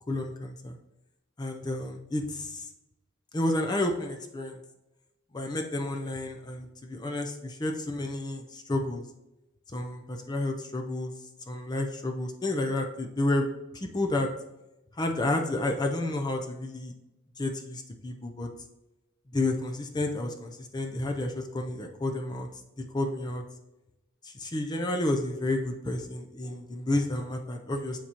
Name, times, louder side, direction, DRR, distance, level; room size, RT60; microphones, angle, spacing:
voice 1, 0.1-0.8 1.4-2.7 3.3-4.6 5.3-9.0 9.7-11.1 11.5-13.5 13.7-14.3 15.0-16.9 17.4-18.5 19.3-22.5 22.8-23.4 24.2-28.0, left 2 dB, 20° left, 3 dB, 0.5 m, -31 dB
7.5 x 6.9 x 2.9 m, 0.97 s
head